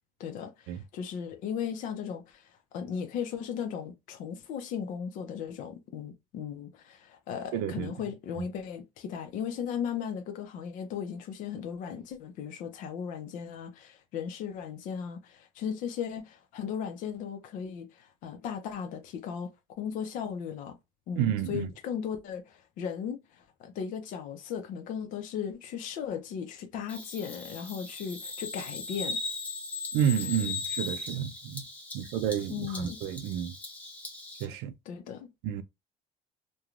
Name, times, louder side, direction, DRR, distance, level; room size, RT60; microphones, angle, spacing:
voice 1, 0.2-19.5 19.8-20.8 21.1-29.2 32.5-33.0 34.9-35.3, left 7 dB, 55° left, 0.6 m, -37 dB
voice 2, 7.5-7.9 8.4-8.5 21.2-21.7 29.9-31.6 31.9-33.6 34.4-34.7 35.4-35.6, right 9 dB, 85° right, 0.4 m, -30 dB
Bird vocalization bird call bird song, 26.9-34.4, left 4 dB, 10° left, 0.7 m, -38 dB
3.1 x 2.2 x 2.4 m
cardioid pair, 180°, 16 cm